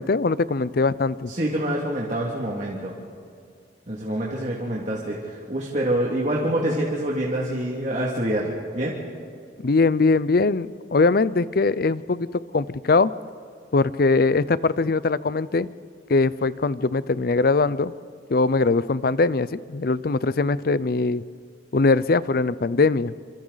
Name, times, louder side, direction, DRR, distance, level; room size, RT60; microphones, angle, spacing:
voice 1, 0.0-1.3 9.6-13.1 13.7-15.7 16.1-17.9 18.3-21.2 21.7-23.1, left 3 dB, 50° left, 17 dB, 0.5 m, -21 dB
voice 2, 1.3-2.9 3.9-9.0, right 1 dB, 40° right, -4 dB, 2.3 m, -26 dB
28.0 x 26.5 x 4.0 m, 2.3 s
head